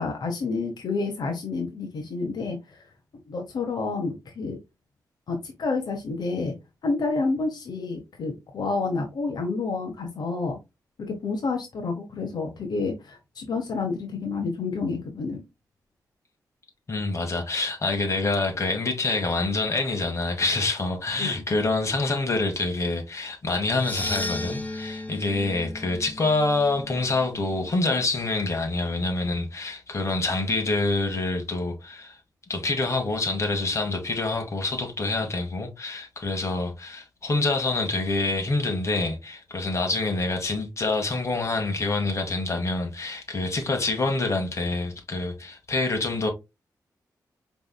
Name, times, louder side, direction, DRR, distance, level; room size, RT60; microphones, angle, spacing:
voice 1, 0.0-2.8 3.3-4.6 5.3-6.5 6.8-10.6 11.0-15.4 21.2-21.4, left 3 dB, 70° left, 1.1 m, -29 dB
voice 2, 16.9-32.2 32.5-46.3, left 3 dB, 40° left, 1.7 m, -26 dB
sound 1, 23.7-28.0, left 2 dB, 20° left, 0.7 m, -36 dB
5.3 x 3.5 x 2.3 m
wide cardioid pair, 110°, 7 cm